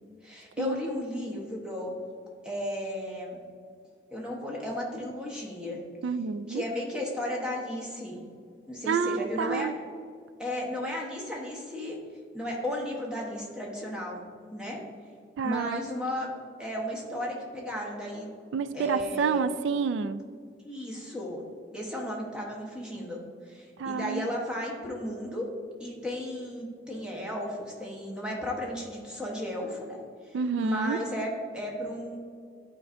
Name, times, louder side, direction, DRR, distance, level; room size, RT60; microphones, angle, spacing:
voice 1, 0.2-1.9 2.4-3.4 4.1-5.8 6.5-8.2 8.7-9.7 10.4-12.0 12.3-14.2 14.5-14.8 15.4-16.3 16.6-18.3 18.7-19.5 20.6-21.4 21.7-23.2 23.4-25.5 25.8-30.0 30.2-32.2, left 1 dB, 5° right, -3 dB, 1.0 m, -34 dB
voice 2, 6.0-6.6 8.9-9.7 15.4-15.8 18.5-20.2 23.8-24.3 30.3-31.0, right 5 dB, 85° right, 13 dB, 0.3 m, -29 dB
11.0 x 4.6 x 2.5 m, 2.1 s
head